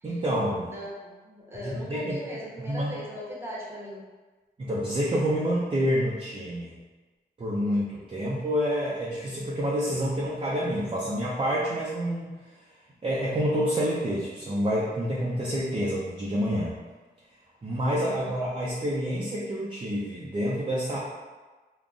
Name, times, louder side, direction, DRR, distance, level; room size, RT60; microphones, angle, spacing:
voice 1, 0.0-0.7 1.6-3.0 4.6-6.8 7.4-12.4 13.0-16.7 17.6-21.0, equal, 30° right, -6 dB, 0.5 m, -28 dB
voice 2, 0.6-4.0 17.9-18.4, equal, 15° right, -5 dB, 0.9 m, -39 dB
3.7 x 2.2 x 2.4 m, 1.3 s
cardioid pair, 80°, 18 cm